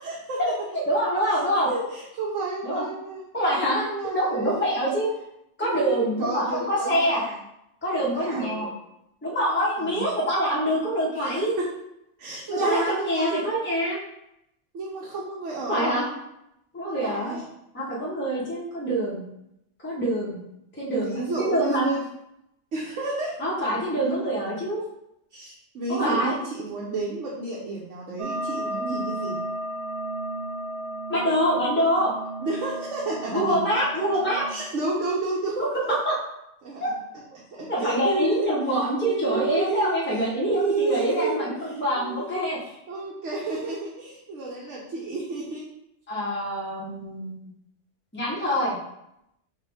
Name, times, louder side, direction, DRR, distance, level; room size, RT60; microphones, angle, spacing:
voice 1, 0.0-0.4 1.7-3.3 3.8-4.8 5.6-7.4 8.0-8.7 9.8-10.0 11.1-11.3 11.6-11.7 12.2-13.4 14.7-16.0 16.9-17.5 20.9-22.0 22.7-23.3 25.3-29.4 32.4-33.6 34.5-35.9 36.6-37.0 37.5-38.5 39.0-40.0 40.4-42.5 42.9-45.6, right 3 dB, 80° right, -4 dB, 1.2 m, -31 dB
voice 2, 0.8-1.7 2.6-2.8 3.3-5.1 5.6-7.2 7.8-8.7 9.2-11.5 12.5-14.0 15.7-16.1 16.7-17.4 17.7-19.2 19.8-20.4 20.8-21.9 23.4-24.8 25.9-26.3 31.1-32.1 33.3-34.5 36.0-36.2 36.8-36.9 37.7-42.6 46.1-47.5 48.1-48.8, equal, 10° left, -7 dB, 1.2 m, -25 dB
sound 1, 28.2-34.6, right 1 dB, 60° right, 0.3 m, -33 dB
5.7 x 2.7 x 3.5 m, 0.81 s
omnidirectional pair, 1.3 m